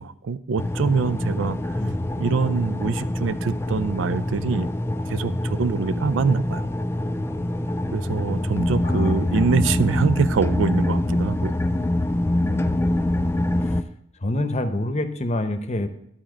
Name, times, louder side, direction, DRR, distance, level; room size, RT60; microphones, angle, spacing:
voice 1, 0.0-1.8 2.2-4.7 5.1-6.7 7.9-11.5, right 5 dB, 75° right, 15 dB, 0.4 m, -24 dB
sound 1, 0.6-13.8, left 1 dB, 15° left, 0.3 m, -25 dB
voice 2, 1.8-2.2 8.8-9.4 12.4-12.9 13.6-13.8 14.2-15.9, left 1 dB, 35° left, 9 dB, 0.8 m, -26 dB
11.5 x 4.3 x 6.2 m, 0.74 s
head